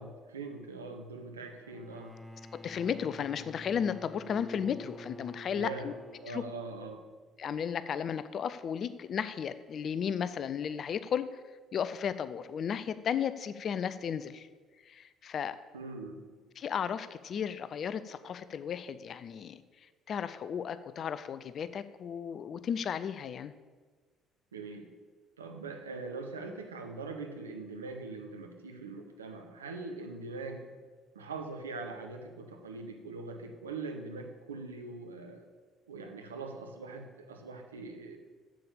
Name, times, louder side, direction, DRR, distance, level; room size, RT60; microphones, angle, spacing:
voice 1, 0.0-2.2 5.5-5.9 6.2-7.0 15.7-16.2 24.5-24.9 25.4-30.7 31.1-35.4 35.9-38.2, right 3 dB, 85° right, 4 dB, 0.9 m, -42 dB
Bowed string instrument, 1.6-6.9, equal, ahead, 0.8 m, -49 dB
voice 2, 2.5-5.9 6.3-6.4 7.4-11.4 11.7-14.5 14.9-15.6 16.6-19.6 20.1-23.5, left 7 dB, 45° left, 13 dB, 0.5 m, -34 dB
7.6 x 7.4 x 6.9 m, 1.4 s
figure-of-eight pair, 50°, 0 cm